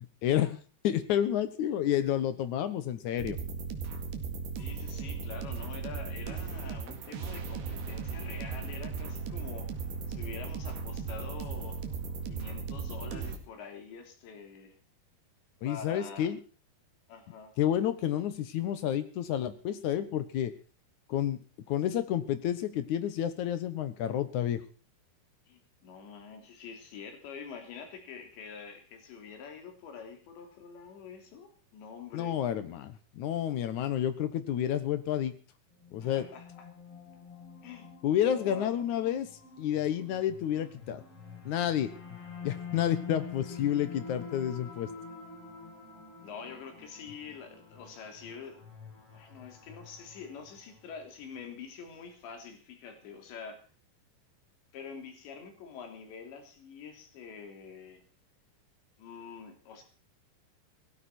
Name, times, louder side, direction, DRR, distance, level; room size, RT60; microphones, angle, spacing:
voice 1, 0.2-0.6 0.8-3.4 15.6-16.4 17.6-20.5 21.1-21.4 21.7-24.6 32.1-35.3 35.9-36.3 38.0-39.3 39.6-41.0 41.5-41.9 42.4-44.9, left 10 dB, 70° left, 11 dB, 1.8 m, -30 dB
sound 1, 3.2-13.4, right 5 dB, 75° right, 4.0 m, -37 dB
voice 2, 4.6-11.8 12.3-14.8 15.6-16.3 17.1-17.5 25.5-32.4 36.0-36.7 37.6-37.9 38.2-38.8 46.2-48.6 49.1-53.6 54.7-58.0 59.0-59.8, left 6 dB, 90° left, 5 dB, 5.4 m, -46 dB
sound 2, 35.7-51.1, left 5 dB, 35° left, 6.7 m, -47 dB
17.5 x 15.0 x 4.4 m, 0.38 s
omnidirectional pair, 5.0 m